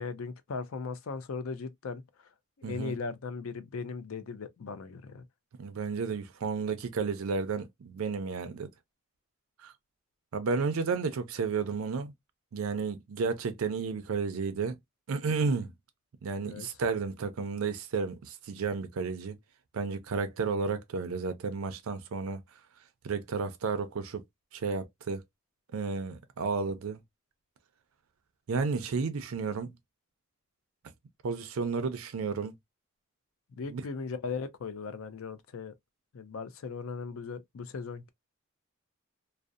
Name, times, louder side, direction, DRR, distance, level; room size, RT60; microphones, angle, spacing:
voice 1, 0.0-2.3 2.6-5.2 16.4-16.7 33.6-35.7 36.1-38.1, left 4 dB, 75° left, 0.4 m, -38 dB
voice 2, 2.6-2.9 5.6-8.7 9.6-9.7 10.3-12.1 12.5-14.8 15.1-15.7 16.2-19.4 19.7-22.6 23.0-24.2 24.5-25.2 25.7-27.0 28.5-29.7 31.2-32.5 33.7-33.8, right 5 dB, 80° right, 0.4 m, -32 dB
2.6 x 2.0 x 2.3 m
head